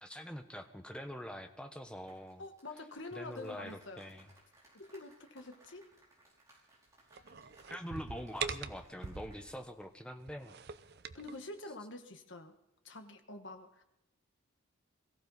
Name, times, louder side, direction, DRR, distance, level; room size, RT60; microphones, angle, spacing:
voice 1, 0.0-2.4 3.1-4.3 7.7-10.5, equal, 5° left, 5 dB, 1.0 m, -44 dB
sound 1, 2.1-9.4 9.7-9.9, right 1 dB, 15° right, 5.2 m, -65 dB
voice 2, 2.4-4.1 4.7-5.9 11.1-12.5 12.8-13.8, left 2 dB, 55° left, 6 dB, 1.4 m, -47 dB
sound 2, 7.1-9.6 10.2-11.4, right 6 dB, 50° right, 0.6 m, -43 dB
21.5 x 15.0 x 4.1 m, 0.87 s
head